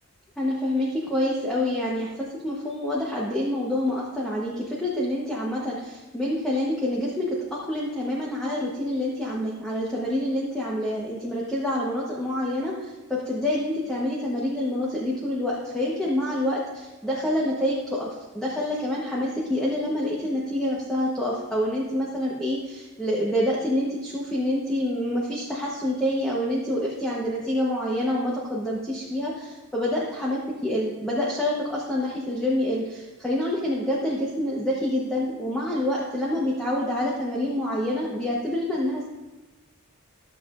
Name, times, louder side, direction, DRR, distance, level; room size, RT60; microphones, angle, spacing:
voice 1, 0.4-39.1, left 1 dB, 5° left, -6 dB, 1.0 m, -27 dB
13.5 x 7.1 x 2.5 m, 1.1 s
head